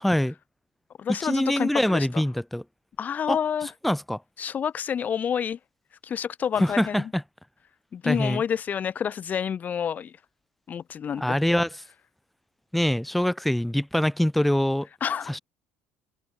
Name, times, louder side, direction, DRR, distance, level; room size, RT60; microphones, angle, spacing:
voice 1, 0.0-0.3 1.2-2.6 3.3-3.4 3.8-4.2 6.6-7.2 8.0-8.4 11.1-11.8 12.7-14.9 15.3-15.4, left 1 dB, ahead, 0.5 m, -24 dB
voice 2, 1.0-2.2 3.0-3.7 4.4-5.6 6.0-7.0 7.9-10.1 10.7-11.4 15.0-15.4, left 8 dB, 35° left, 1.7 m, -28 dB
open air
supercardioid pair, 105°, 5 cm